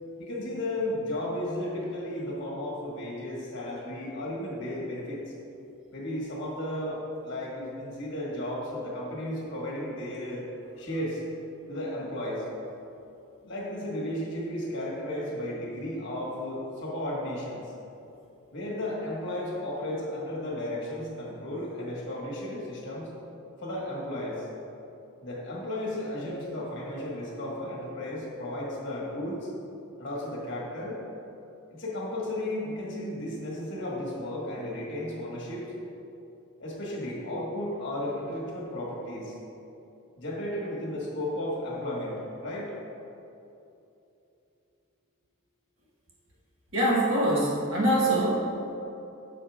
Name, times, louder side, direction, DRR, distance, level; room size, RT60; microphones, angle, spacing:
voice 1, 0.2-5.2 5.9-10.4 10.8-11.2 11.7-12.4 13.4-17.7 18.5-23.1 23.6-24.5 25.2-29.5 30.0-31.0 31.7-35.7 36.6-39.4 40.2-42.7, left 1 dB, 55° left, -4 dB, 1.5 m, -34 dB
voice 2, 46.7-48.8, right 1 dB, 65° right, -5 dB, 1.2 m, -24 dB
8.4 x 6.8 x 2.4 m, 2.8 s
head